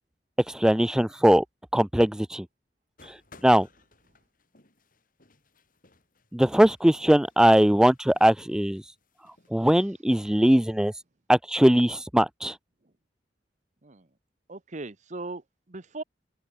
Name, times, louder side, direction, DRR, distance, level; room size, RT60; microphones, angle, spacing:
voice 1, 0.5-1.4 1.7-2.5 3.4-3.7 6.3-8.8 9.5-10.9 11.3-12.5, right 1 dB, 5° right, 0.4 m, -20 dB
sound 1, 3.0-9.5, left 3 dB, 50° left, 7.1 m, -59 dB
voice 2, 14.5-16.0, right 2 dB, 45° right, 1.1 m, -38 dB
open air
head